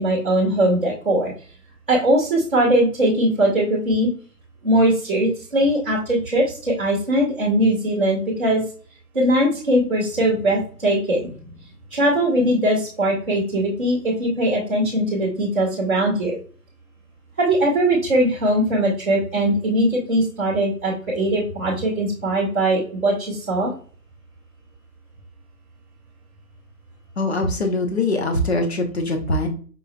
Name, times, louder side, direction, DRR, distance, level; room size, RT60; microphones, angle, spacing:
voice 1, 0.0-1.3 1.9-4.1 4.6-8.6 9.1-11.5 11.9-16.4 17.4-23.7, right 1 dB, 10° right, -14 dB, 0.9 m, -20 dB
voice 2, 27.2-29.5, left 2 dB, 40° left, 4 dB, 0.8 m, -22 dB
5.4 x 3.0 x 2.3 m, 0.42 s
hypercardioid pair, 170°, 48 cm